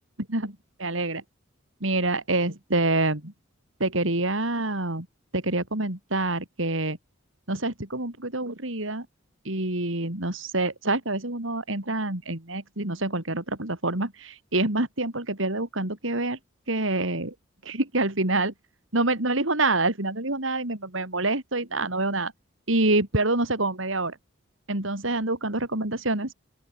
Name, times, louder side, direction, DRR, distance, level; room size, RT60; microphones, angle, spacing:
voice 1, 0.3-1.2 1.8-3.3 3.8-5.1 5.3-7.0 7.5-9.1 9.4-16.4 16.7-17.3 17.6-18.5 18.9-22.3 22.7-24.2 24.7-26.3, right 2 dB, 75° right, 3.8 m, -26 dB
open air
head